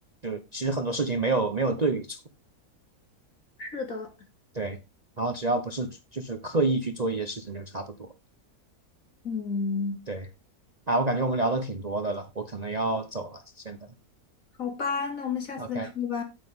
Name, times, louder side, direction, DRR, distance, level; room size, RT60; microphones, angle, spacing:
voice 1, 0.2-2.2 4.5-4.8 5.2-8.1 10.1-10.2 10.9-13.8 15.6-15.9, right 2 dB, 30° right, 0.9 m, -28 dB
voice 2, 3.6-4.1 9.2-10.0 14.6-16.2, left 5 dB, 60° left, 3.2 m, -31 dB
9.4 x 8.6 x 3.6 m
omnidirectional pair, 1.6 m